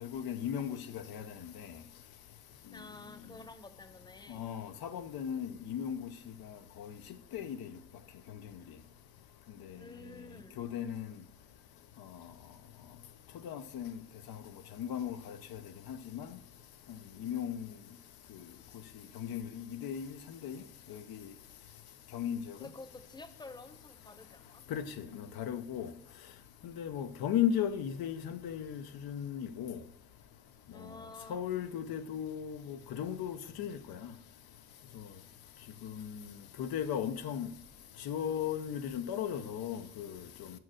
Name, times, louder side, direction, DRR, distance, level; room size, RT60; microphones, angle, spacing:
voice 1, 0.0-1.2 4.3-6.1 6.8-6.9 7.3-7.7 10.6-11.0 13.4-13.9 14.8-15.6 15.9-16.3 17.2-17.7 19.2-20.1 20.4-20.6 20.9-21.2 22.1-22.4 24.7-24.8 25.1-25.9 26.6-29.8 31.3-34.0 35.8-36.2 36.6-37.5 38.1-40.2, left 9 dB, 85° left, 0.6 m, -36 dB
voice 2, 2.7-4.4 9.8-10.6 22.6-24.6 30.7-31.4, left 2 dB, 10° left, 0.8 m, -50 dB
6.1 x 4.6 x 6.2 m
cardioid pair, 60°, 36 cm